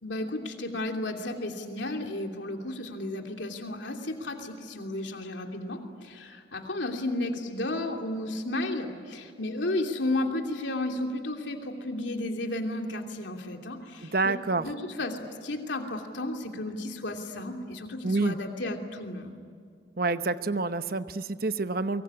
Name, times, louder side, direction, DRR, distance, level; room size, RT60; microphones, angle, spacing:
voice 1, 0.0-14.4 14.6-19.3, left 1 dB, 75° left, 3 dB, 2.9 m, -33 dB
voice 2, 14.0-14.7 18.0-18.4 20.0-22.0, right 3 dB, 50° right, 11 dB, 0.9 m, -28 dB
24.0 x 23.5 x 9.9 m, 2.1 s
head